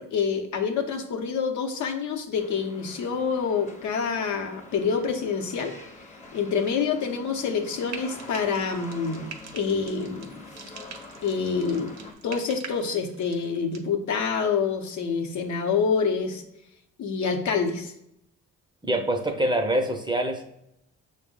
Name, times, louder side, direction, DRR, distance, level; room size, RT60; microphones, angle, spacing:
voice 1, 0.0-5.7 6.3-9.3 9.5-10.4 11.2-11.9 12.2-16.4 17.0-17.9, left 5 dB, 70° left, 4 dB, 0.7 m, -27 dB
sound 1, 2.4-12.1, left 2 dB, 25° left, 0.7 m, -45 dB
Frying (food), 7.8-13.9, right 6 dB, 65° right, 0.6 m, -45 dB
voice 2, 18.8-20.4, right 1 dB, 15° right, 4 dB, 0.5 m, -25 dB
6.0 x 2.1 x 3.6 m, 0.78 s
cardioid pair, 90°, 30 cm